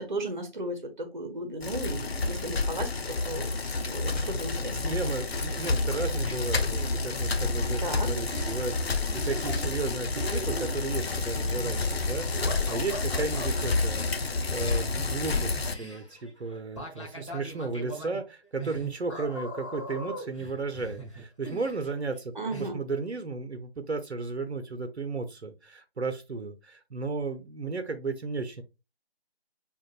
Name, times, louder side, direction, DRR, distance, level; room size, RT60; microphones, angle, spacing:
voice 1, 0.0-5.0 7.8-8.1 22.4-22.8, right 1 dB, 45° right, 0.8 m, -35 dB
Bicycle, 1.6-15.7, left 3 dB, 70° left, 0.6 m, -29 dB
voice 2, 4.7-22.3 22.6-28.6, right 3 dB, 85° right, 0.8 m, -34 dB
sound 1, 5.8-6.7 7.9-8.0 8.3-8.6 9.1-9.9 10.1-13.5 14.6-22.2 22.5-22.7, right 2 dB, 30° left, 1.0 m, -41 dB
5.2 x 2.5 x 2.4 m
figure-of-eight pair, 170°, 32 cm